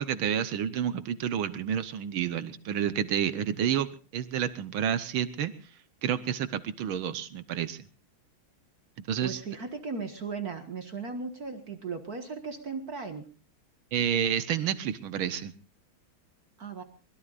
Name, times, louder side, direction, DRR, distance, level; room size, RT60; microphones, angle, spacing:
voice 1, 0.0-5.5 6.0-7.9 9.1-9.4 13.9-15.5, right 9 dB, 85° right, 13 dB, 1.8 m, -29 dB
voice 2, 9.2-13.3 16.6-16.8, right 4 dB, 50° right, 7 dB, 2.0 m, -37 dB
23.5 x 21.5 x 2.5 m, 0.36 s
omnidirectional pair, 2.2 m